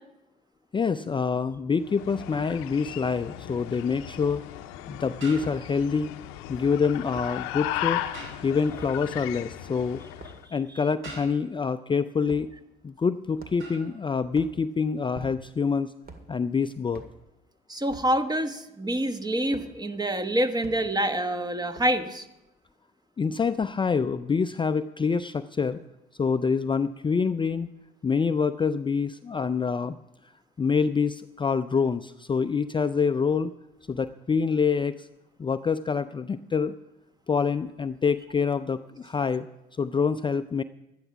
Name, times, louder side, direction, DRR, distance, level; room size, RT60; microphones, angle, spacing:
voice 1, 0.7-4.4 4.9-6.1 6.5-8.0 8.4-10.0 10.5-12.5 12.8-15.9 16.3-17.0 23.2-25.8 26.2-27.7 28.0-30.0 30.6-33.5 33.9-35.1 35.4-36.7 37.3-39.5 39.7-40.6, left 5 dB, 25° left, 11 dB, 0.4 m, -26 dB
sound 1, 1.8-10.4, left 13 dB, 85° left, 0.7 m, -36 dB
sound 2, 2.7-2.9 5.2-6.0 8.1-8.8 11.0-11.7 13.6-14.0, right 3 dB, 75° right, 5.3 m, -44 dB
sound 3, 4.2-4.4 5.4-5.6 7.1-7.3 8.8-8.9 10.0-10.6 11.0-11.3 12.2-12.5 13.4-13.8 14.3-14.6 15.1-15.6 16.0-16.3 16.9-17.2 17.9-18.1 19.5-19.7 20.6-20.8 21.7-22.0, right 3 dB, 45° right, 2.1 m, -45 dB
voice 2, 17.7-22.2, right 1 dB, 20° right, 9 dB, 1.2 m, -26 dB
12.0 x 9.9 x 5.9 m, 0.90 s
supercardioid pair, 65°, 21 cm